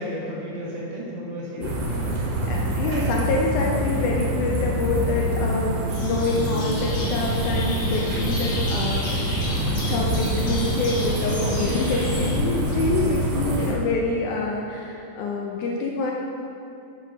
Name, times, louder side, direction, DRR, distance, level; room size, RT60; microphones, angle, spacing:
voice 1, 0.0-2.0 2.4-2.6 11.4-11.9 13.3-13.7, equal, 70° right, -6 dB, 2.6 m, -33 dB
sound 1, 1.6-13.7, right 1 dB, 90° right, 2.9 m, -26 dB
voice 2, 2.5-9.4 9.9-16.1, left 3 dB, 80° left, -1 dB, 1.9 m, -26 dB
sound 2, 5.9-12.3, left 1 dB, 55° left, 1.7 m, -32 dB
7.7 x 4.7 x 4.9 m, 2.6 s
omnidirectional pair, 3.9 m